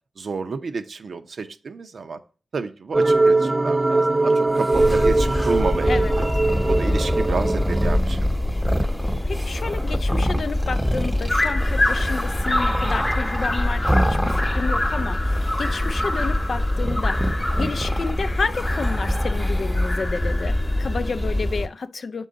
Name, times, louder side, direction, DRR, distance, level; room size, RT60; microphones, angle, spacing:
voice 1, 0.2-2.2 2.5-6.3 6.7-8.3, right 4 dB, 75° right, 0.6 m, -30 dB
sound 1, 2.9-8.0, right 2 dB, 25° right, 0.3 m, -21 dB
sound 2, 4.6-15.0 15.3-16.3 16.8-20.0, equal, 5° right, 0.7 m, -29 dB
sound 3, 4.7-21.7, left 1 dB, 25° left, 0.9 m, -24 dB
voice 2, 9.3-17.3 17.6-22.3, left 4 dB, 65° left, 0.4 m, -30 dB
7.4 x 3.8 x 3.9 m
cardioid pair, 55°, 0 cm